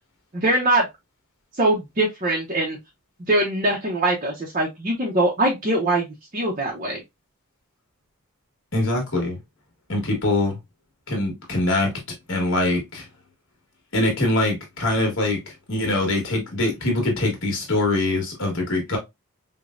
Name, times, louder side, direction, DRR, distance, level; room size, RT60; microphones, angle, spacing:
voice 1, 0.3-0.9 1.6-2.8 3.3-6.1 6.3-7.0, right 1 dB, 35° right, 0.7 m, -22 dB
voice 2, 8.7-9.4 9.9-10.6 11.1-11.9 12.3-13.1 13.9-19.0, left 2 dB, 55° left, 1.5 m, -23 dB
5.0 x 2.2 x 2.4 m
head